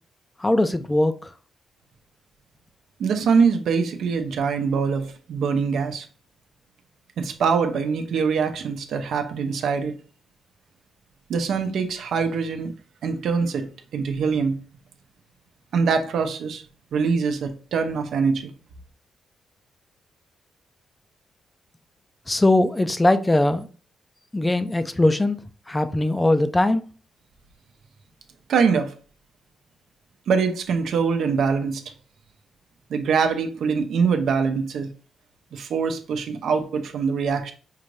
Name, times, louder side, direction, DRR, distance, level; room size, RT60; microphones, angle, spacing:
voice 1, 0.4-1.1 22.3-23.7 24.3-25.4 25.7-26.8, left 1 dB, 15° left, 0.5 m, -20 dB
voice 2, 3.0-6.1 7.2-10.0 11.3-12.7 13.0-13.7 13.9-14.6 15.7-16.6 16.9-18.5 28.5-28.9 30.3-31.8 32.9-34.9 35.5-37.5, right 5 dB, 75° right, 0.7 m, -23 dB
5.6 x 2.5 x 3.2 m
cardioid pair, 85°, 0 cm